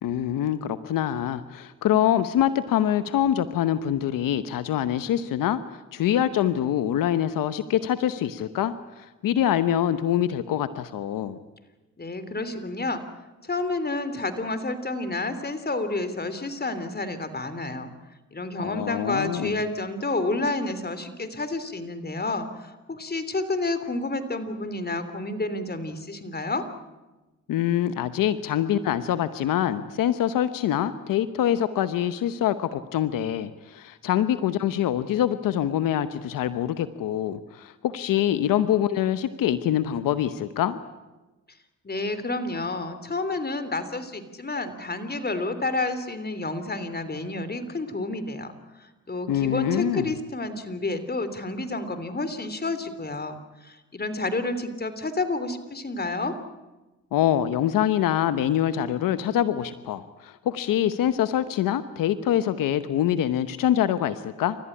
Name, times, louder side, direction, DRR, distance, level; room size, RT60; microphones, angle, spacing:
voice 1, 0.0-5.6 5.9-11.4 18.6-19.6 27.5-40.8 49.3-50.2 57.1-64.6, left 11 dB, 90° left, 12 dB, 1.0 m, -25 dB
voice 2, 12.0-13.0 13.4-17.9 18.3-26.6 41.8-48.5 48.8-56.3, left 2 dB, 30° left, 11 dB, 3.3 m, -30 dB
29.5 x 14.5 x 10.0 m, 1.1 s
cardioid pair, 65°, 32 cm